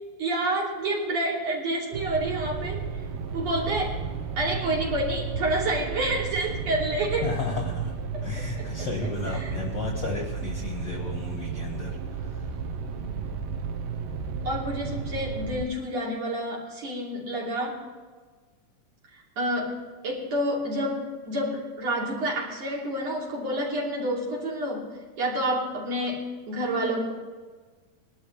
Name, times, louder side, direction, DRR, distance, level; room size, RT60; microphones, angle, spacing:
voice 1, 0.2-2.8 3.3-3.9 4.4-7.3 8.6-8.9 9.4-9.6 14.4-17.8 19.4-19.8 20.0-24.9 25.2-26.2 26.5-27.1, right 1 dB, 50° right, -4 dB, 4.2 m, -28 dB
sound 1, 1.9-15.6, right 5 dB, 85° right, 2.6 m, -33 dB
voice 2, 7.2-7.9 8.2-12.5, left 4 dB, 50° left, 0 dB, 1.4 m, -33 dB
21.0 x 12.0 x 3.3 m, 1.4 s
omnidirectional pair, 3.9 m